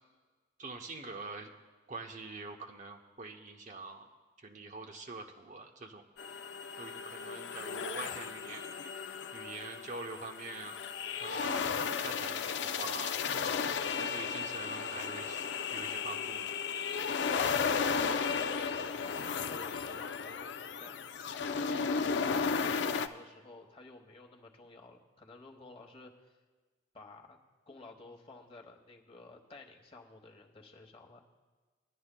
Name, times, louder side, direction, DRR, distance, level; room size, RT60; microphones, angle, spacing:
voice 1, 0.6-1.5 1.9-4.1 4.4-6.1 6.8-8.7 9.3-10.8 11.2-13.1 14.0-15.4 15.7-16.5, right 3 dB, 40° right, 3 dB, 0.7 m, -44 dB
sound 1, 6.2-23.1, left 6 dB, 65° left, 0.4 m, -34 dB
voice 2, 17.3-21.0 21.5-26.4 26.9-27.4 27.7-31.3, left 2 dB, 30° left, 2 dB, 1.0 m, -52 dB
19.5 x 11.0 x 2.2 m, 1.4 s
head